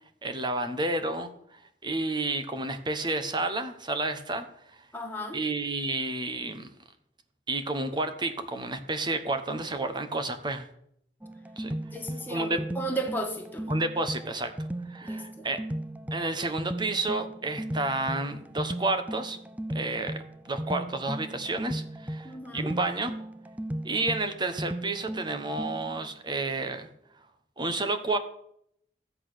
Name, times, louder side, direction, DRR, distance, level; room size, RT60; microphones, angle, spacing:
voice 1, 0.2-4.5 5.3-6.7 7.5-10.7 11.6-11.8 12.3-12.6 13.7-14.5 14.9-15.6 16.1-19.4 19.7-23.1 23.8-26.9 27.6-28.2, right 2 dB, 25° right, 7 dB, 1.2 m, -30 dB
voice 2, 4.9-5.4 11.9-13.7 15.0-15.5 22.2-22.7, right 1 dB, 10° left, 2 dB, 1.9 m, -35 dB
sound 1, 11.2-26.1, right 1 dB, 10° right, 0.4 m, -37 dB
13.5 x 8.5 x 6.4 m, 0.72 s
head